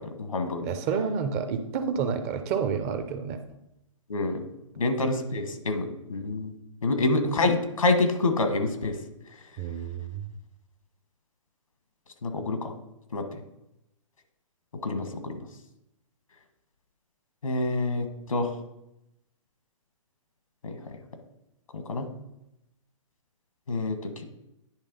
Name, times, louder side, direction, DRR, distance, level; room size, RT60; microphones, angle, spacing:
voice 1, 0.0-0.6 4.1-4.4 4.8-6.5 6.8-9.0 12.2-12.7 13.1-13.2 14.8-15.4 17.4-18.5 20.6-20.8 21.7-22.1 23.7-24.2, left 2 dB, 90° left, 7 dB, 1.4 m, -27 dB
voice 2, 0.6-3.4 9.6-10.2, right 6 dB, 30° right, 9 dB, 0.7 m, -29 dB
10.0 x 3.4 x 5.3 m, 0.87 s
hypercardioid pair, 140°, 17 cm